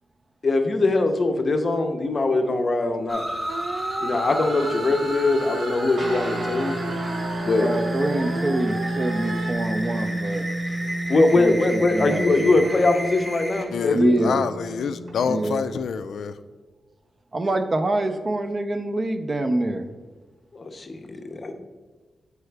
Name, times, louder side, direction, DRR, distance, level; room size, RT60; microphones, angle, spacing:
voice 1, 0.4-3.2 4.0-6.8 7.4-7.7 11.1-14.2 20.5-21.5, left 3 dB, 35° left, 0.6 m, -22 dB
sound 1, 3.1-13.7, equal, 10° right, 0.8 m, -33 dB
sound 2, 3.5-9.5, right 5 dB, 90° right, 0.4 m, -34 dB
sound 3, 6.0-15.7, right 1 dB, 60° right, 1.1 m, -31 dB
voice 2, 7.5-10.4 11.4-12.6 13.9-14.4 15.2-15.6 17.3-19.9, right 2 dB, 30° right, 0.4 m, -25 dB
voice 3, 13.7-16.4, left 6 dB, 90° left, 0.3 m, -27 dB
8.0 x 4.7 x 3.3 m
wide cardioid pair, 170°, 0 cm